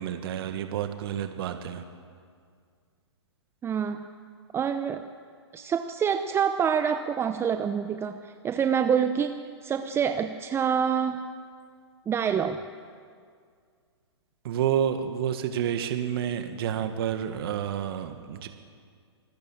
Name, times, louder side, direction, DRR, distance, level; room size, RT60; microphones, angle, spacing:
voice 1, 0.0-1.8 14.4-18.5, right 9 dB, 55° right, 7 dB, 1.7 m, -29 dB
voice 2, 3.6-4.1 4.5-5.1 5.5-11.2 12.1-12.7, right 7 dB, 15° right, 8 dB, 0.8 m, -26 dB
26.5 x 19.5 x 7.4 m, 2.1 s
hypercardioid pair, 125°, 15 cm